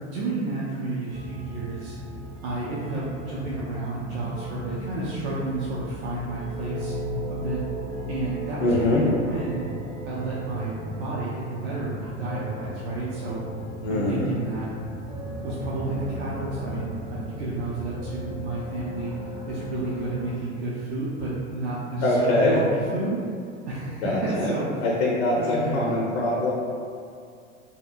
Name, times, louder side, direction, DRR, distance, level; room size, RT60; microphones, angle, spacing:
voice 1, 0.0-2.0 2.4-6.9 7.3-7.6 8.1-9.6 10.0-13.4 13.9-14.7 15.4-19.1 19.5-23.2 23.7-24.7 25.4-26.1, right 2 dB, 60° right, -7 dB, 0.6 m, -31 dB
sound 1, 1.1-20.4, equal, 15° right, 0.5 m, -36 dB
voice 2, 8.6-9.0 13.8-14.3 22.0-22.6 24.0-24.5 24.8-26.5, left 2 dB, 60° left, -4 dB, 0.6 m, -23 dB
2.8 x 2.3 x 2.5 m, 2.3 s
figure-of-eight pair, 85°, 37 cm